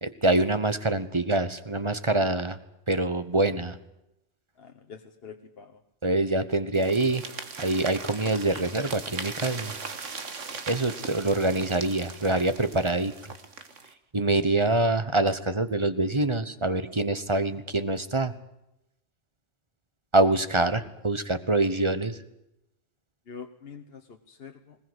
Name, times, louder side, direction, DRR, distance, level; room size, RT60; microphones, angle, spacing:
voice 1, 0.0-2.6 2.9-3.8 6.0-7.2 7.6-9.7 10.7-13.1 14.1-18.3 20.1-22.2, right 2 dB, 25° right, 12 dB, 1.1 m, -25 dB
voice 2, 4.6-5.8 23.3-24.8, left 6 dB, 55° left, 5 dB, 1.4 m, -45 dB
sound 1, 6.7-13.9, right 4 dB, 90° right, 2.1 m, -39 dB
20.5 x 19.0 x 8.1 m, 0.87 s
omnidirectional pair, 1.2 m